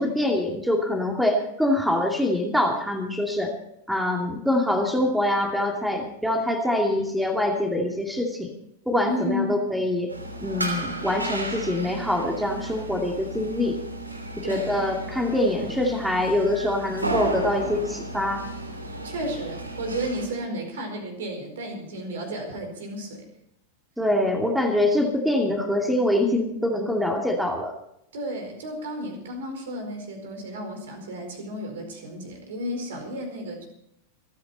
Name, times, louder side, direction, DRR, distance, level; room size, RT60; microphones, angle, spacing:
voice 1, 0.0-3.5 3.9-8.5 8.9-10.1 10.4-13.8 14.4-18.4 24.0-27.7, left 1 dB, ahead, 2 dB, 2.5 m, -24 dB
voice 2, 9.0-9.7 14.3-14.7 19.0-23.3 28.1-33.7, equal, 60° right, 4 dB, 4.7 m, -33 dB
sound 1, 10.1-20.3, right 2 dB, 85° right, 3.1 m, -33 dB
27.5 x 9.5 x 4.3 m, 0.76 s
figure-of-eight pair, 90°, 0 cm